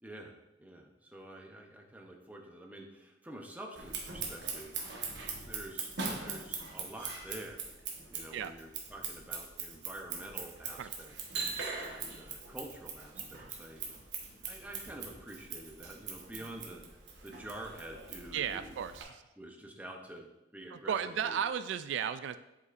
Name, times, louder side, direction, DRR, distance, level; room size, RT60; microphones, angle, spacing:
voice 1, 0.0-4.8 5.4-7.7 8.1-13.8 14.4-16.8 17.2-18.8 19.4-21.4, right 1 dB, 10° right, 1 dB, 0.7 m, -48 dB
Scissors, 3.8-19.0, right 5 dB, 70° right, 1.1 m, -41 dB
voice 2, 18.3-19.0 20.7-22.4, right 8 dB, 85° right, 12 dB, 0.3 m, -34 dB
8.0 x 5.3 x 2.5 m, 0.94 s
head